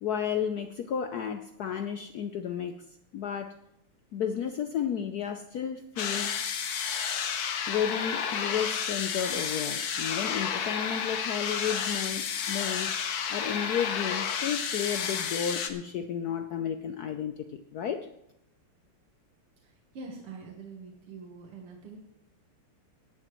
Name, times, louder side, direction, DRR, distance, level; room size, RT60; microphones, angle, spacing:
voice 1, 0.0-2.8 3.1-3.5 4.1-6.3 7.7-12.9 13.3-18.1, left 8 dB, 85° left, 7 dB, 0.8 m, -32 dB
sound 1, 6.0-15.7, left 7 dB, 55° left, 1.2 m, -31 dB
voice 2, 19.9-22.0, right 4 dB, 90° right, 1 dB, 2.3 m, -44 dB
18.0 x 11.0 x 3.1 m, 0.82 s
omnidirectional pair, 2.4 m